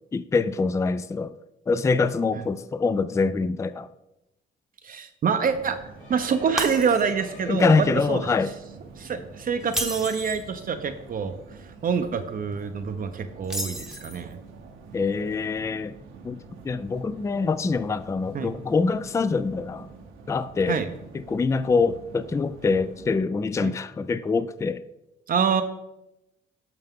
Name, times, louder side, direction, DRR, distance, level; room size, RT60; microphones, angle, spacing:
voice 1, 0.1-1.3 1.7-3.9 7.5-8.5 14.9-15.9 16.2-19.9 20.3-20.8 21.3-24.8, left 4 dB, 15° left, 0.3 m, -24 dB
voice 2, 4.8-5.8 6.1-8.3 9.0-11.3 11.8-14.4 18.3-18.5 20.7-20.9 23.6-23.7 25.3-25.6, right 6 dB, 45° right, 0.6 m, -26 dB
sound 1, 5.4-23.2, right 4 dB, 80° right, 1.0 m, -46 dB
sound 2, 5.9-8.3, left 4 dB, 80° left, 2.5 m, -48 dB
Shatter, 6.6-7.4 7.8-8.0 9.6-10.5 13.4-14.3, equal, 5° right, 0.9 m, -32 dB
9.0 x 5.6 x 3.6 m
cardioid pair, 90°, 20 cm